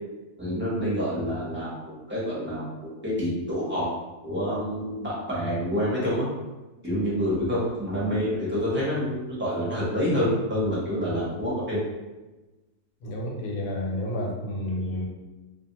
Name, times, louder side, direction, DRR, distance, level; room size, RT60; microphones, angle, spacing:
voice 1, 0.4-1.7 2.1-3.9 4.2-6.3 6.8-11.8, equal, 10° right, -9 dB, 0.7 m, -27 dB
voice 2, 13.0-15.1, left 1 dB, 85° left, -2 dB, 1.3 m, -30 dB
2.6 x 2.5 x 2.8 m, 1.1 s
omnidirectional pair, 1.7 m